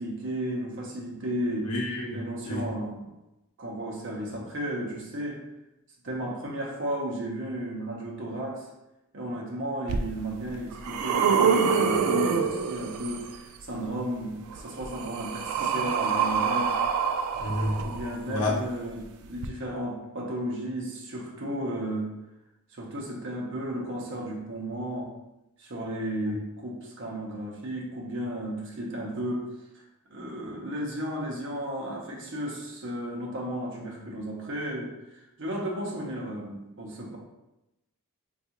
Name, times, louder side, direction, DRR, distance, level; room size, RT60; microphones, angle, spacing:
voice 1, 0.0-1.7 2.1-3.1 3.6-5.4 6.0-8.7 9.1-16.8 17.8-22.1 22.7-25.1 25.6-29.5 29.7-29.8 30.1-37.2, right 1 dB, 55° right, -2 dB, 0.6 m, -34 dB
voice 2, 1.6-2.2 2.5-2.7 17.4-17.8 18.3-18.5 26.2-26.4, left 1 dB, 85° left, -2 dB, 0.7 m, -29 dB
sound 1, 9.9-10.0 10.5-13.3 14.5-18.4 19.4-19.5, right 6 dB, 85° right, 0.3 m, -26 dB
3.5 x 2.3 x 2.8 m, 0.94 s
head